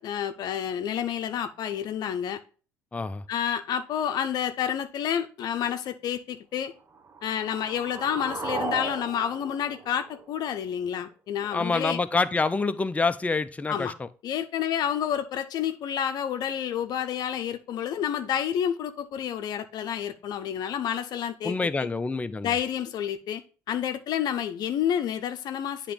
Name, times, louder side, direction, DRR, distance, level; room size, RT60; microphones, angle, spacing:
voice 1, 0.0-2.4 3.3-6.7 7.2-12.0 13.7-13.9 14.2-21.9 22.4-25.9, left 9 dB, 60° left, 0.7 m, -29 dB
voice 2, 2.9-3.2 11.5-14.1 21.4-22.5, left 3 dB, 20° left, 0.5 m, -27 dB
sound 1, 6.9-10.9, right 4 dB, 35° right, 1.0 m, -37 dB
8.5 x 3.0 x 5.0 m
hypercardioid pair, 65°, 8 cm